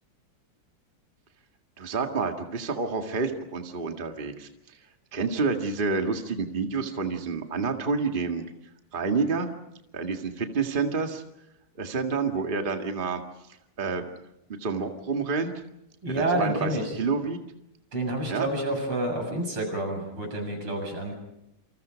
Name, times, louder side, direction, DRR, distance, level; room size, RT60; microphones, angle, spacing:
voice 1, 1.8-4.8 5.1-8.4 8.9-9.5 9.9-11.2 11.8-13.2 13.8-14.1 14.6-15.5 16.2-16.7 17.0-17.4 18.3-18.5, right 4 dB, 25° right, 4 dB, 2.0 m, -28 dB
voice 2, 16.0-17.0 17.9-21.1, right 1 dB, 80° right, 3 dB, 8.2 m, -29 dB
28.5 x 27.0 x 5.2 m, 0.83 s
omnidirectional pair, 2.4 m